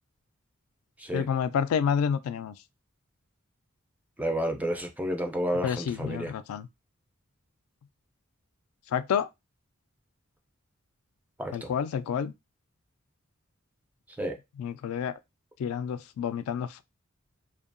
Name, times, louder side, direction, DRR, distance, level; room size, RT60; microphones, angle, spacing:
voice 1, 1.1-2.5 5.6-6.7 8.9-9.3 11.5-12.3 14.6-15.1 15.6-16.8, left 7 dB, 85° left, 0.3 m, -29 dB
voice 2, 4.2-6.3 11.4-11.7 14.2-14.3, equal, 5° right, 0.3 m, -30 dB
2.7 x 2.2 x 2.5 m
head